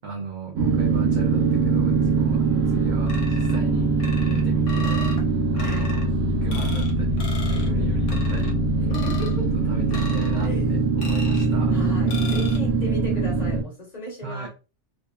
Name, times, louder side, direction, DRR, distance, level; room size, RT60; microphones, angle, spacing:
voice 1, 0.0-3.9 4.2-5.1 5.5-7.3 7.6-8.6 9.3-11.8 14.2-14.5, right 4 dB, 60° right, -1 dB, 0.5 m, -36 dB
sound 1, 0.6-13.6, right 3 dB, 85° right, 1.0 m, -22 dB
sound 2, 3.1-3.6 4.0-5.2 5.6-6.0 6.5-6.9 7.2-7.7 8.1-8.5 8.9-9.4 9.9-10.5 11.0-11.5 12.1-12.6, left 2 dB, 80° left, 1.0 m, -36 dB
voice 2, 7.4-7.9 8.8-9.5 10.4-10.8 11.5-14.5, equal, 35° left, -3 dB, 1.1 m, -36 dB
2.7 x 2.1 x 2.2 m, 0.31 s
omnidirectional pair, 1.3 m